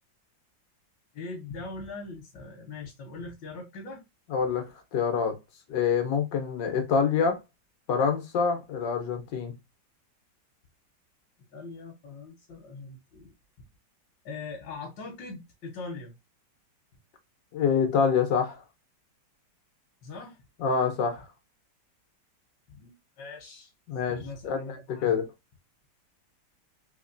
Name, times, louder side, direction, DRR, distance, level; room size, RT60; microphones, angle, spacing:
voice 1, 1.1-4.0 11.5-13.3 14.2-16.2 20.0-20.4 22.7-23.7 24.1-25.2, left 3 dB, 90° left, 1.7 m, -41 dB
voice 2, 4.3-5.4 5.7-7.4 7.9-9.5 17.5-18.6 20.6-21.2 23.9-25.3, left 6 dB, 70° left, 1.6 m, -26 dB
4.1 x 2.9 x 2.5 m
omnidirectional pair, 2.0 m